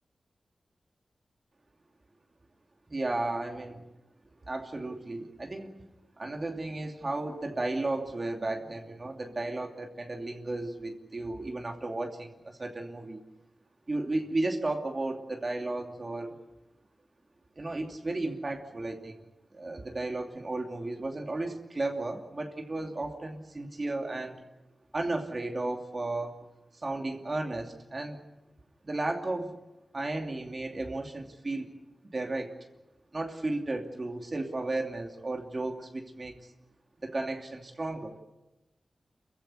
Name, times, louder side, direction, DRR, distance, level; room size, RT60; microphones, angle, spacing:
voice 1, 2.9-3.8 4.5-5.7 6.2-13.2 13.9-16.3 17.6-19.2 19.5-24.4 24.9-26.3 26.7-28.2 28.8-29.6 29.9-31.7 32.1-32.5 33.1-36.4 37.0-38.2, right 2 dB, 40° right, 3 dB, 2.7 m, -34 dB
28.0 x 15.5 x 10.0 m, 1.0 s
wide cardioid pair, 75°, 0 cm